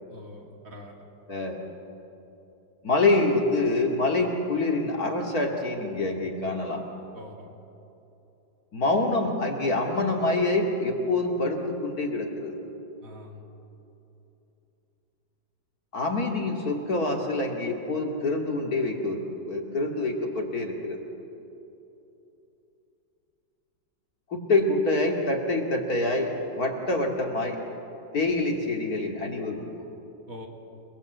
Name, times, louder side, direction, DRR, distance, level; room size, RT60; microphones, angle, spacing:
voice 1, 0.1-1.0 7.1-7.5 13.0-13.4 30.3-30.5, left 2 dB, 45° right, 1 dB, 2.8 m, -44 dB
voice 2, 1.3-1.6 2.8-6.8 8.7-12.6 15.9-21.0 24.3-27.6 28.1-29.9, left 2 dB, 50° left, 1 dB, 2.9 m, -26 dB
28.5 x 20.5 x 8.1 m, 3.0 s
omnidirectional pair, 2.1 m